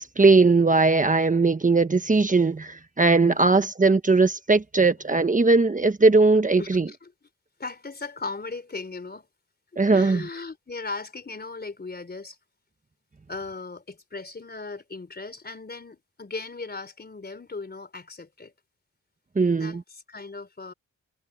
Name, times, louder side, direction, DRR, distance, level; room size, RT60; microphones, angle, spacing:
voice 1, 0.0-6.9 9.8-10.2 19.3-19.8, right 3 dB, 25° right, 1.3 m, -19 dB
voice 2, 3.2-3.7 6.6-7.1 7.6-9.3 9.9-12.4 13.3-18.5 19.6-20.7, left 3 dB, 30° left, 3.8 m, -37 dB
cardioid pair, 65°, 30 cm